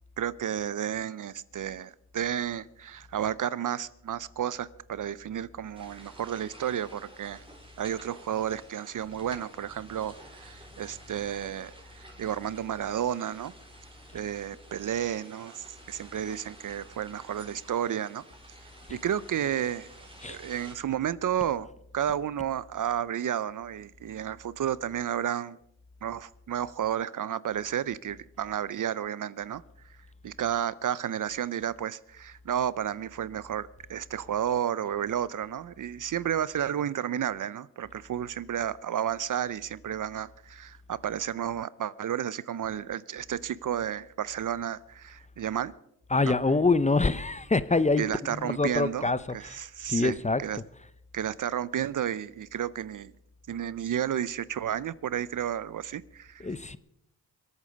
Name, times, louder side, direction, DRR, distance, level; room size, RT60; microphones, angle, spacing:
voice 1, 0.2-7.4 7.8-13.5 14.1-18.2 18.9-19.9 20.3-21.7 21.9-25.6 26.0-29.6 30.2-45.7 46.2-46.3 48.0-50.2 50.4-50.6 51.1-53.1 53.5-56.5, right 10 dB, 50° right, 0.6 m, -32 dB
sound 1, 5.7-20.7, right 1 dB, 10° right, 4.2 m, -52 dB
voice 2, 46.1-49.6 49.9-50.6 56.4-56.8, left 3 dB, 15° left, 0.7 m, -26 dB
25.0 x 8.6 x 5.2 m
cardioid pair, 70°, 42 cm